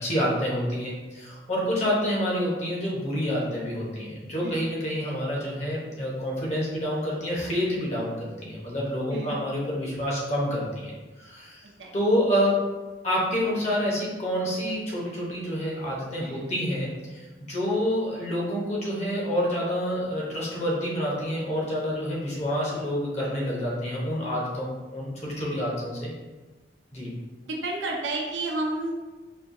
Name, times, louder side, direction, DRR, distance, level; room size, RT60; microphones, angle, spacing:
voice 1, 0.0-10.9 11.2-11.6 11.9-12.7 13.0-26.1 26.9-27.1, equal, 40° left, -5 dB, 0.9 m, -28 dB
voice 2, 4.4-4.7 5.1-5.2 9.1-9.5 11.8-11.9 16.2-16.6 27.4-28.9, right 2 dB, 85° right, -1 dB, 0.6 m, -32 dB
4.3 x 2.3 x 2.6 m, 1.2 s
head